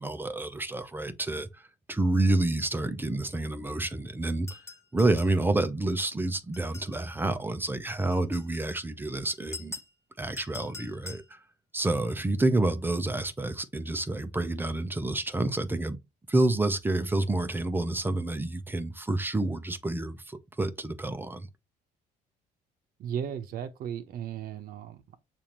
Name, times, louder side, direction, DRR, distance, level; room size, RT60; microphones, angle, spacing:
voice 1, 0.0-4.6 4.9-9.7 10.2-11.4 11.7-16.0 16.3-21.5, right 2 dB, 10° right, 0.5 m, -29 dB
sound 1, 4.5-5.4 6.5-7.1 8.1-8.6 9.3-9.9 10.4-11.3, left 3 dB, 15° left, 1.0 m, -44 dB
voice 2, 23.0-25.2, right 9 dB, 60° right, 0.7 m, -36 dB
6.9 x 2.6 x 2.9 m
cardioid pair, 110°, 17 cm